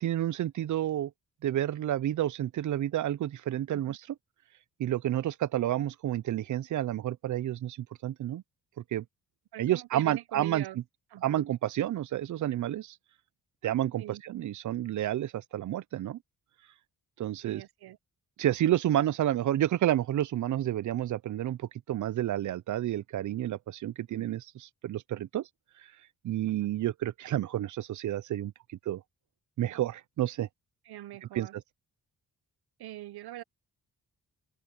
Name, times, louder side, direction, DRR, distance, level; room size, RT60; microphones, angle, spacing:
voice 1, 0.0-1.1 1.4-4.0 4.8-8.4 8.9-9.0 9.6-10.6 11.2-13.0 13.6-16.2 17.2-17.6 18.4-24.4 24.8-25.5 26.2-28.5 28.9-29.0 29.6-30.5 31.3-31.6, right 12 dB, 55° right, 0.5 m, -30 dB
voice 2, 9.5-10.8 11.1-11.5 14.0-14.2 17.4-18.0 24.1-24.4 26.5-26.7 30.9-31.5 32.8-33.4, right 14 dB, 85° right, 0.8 m, -43 dB
open air
wide cardioid pair, 145°, 37 cm